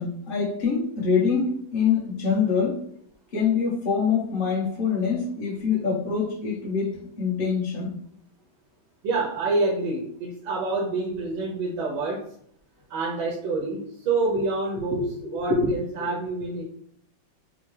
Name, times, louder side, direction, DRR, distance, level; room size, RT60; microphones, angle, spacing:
voice 1, 0.0-2.8 3.3-8.0 14.9-15.7, left 5 dB, 35° left, -3 dB, 1.1 m, -25 dB
voice 2, 9.0-12.3 12.9-16.6, right 3 dB, 85° right, -3 dB, 1.6 m, -27 dB
5.5 x 2.2 x 3.2 m, 0.67 s
omnidirectional pair, 2.1 m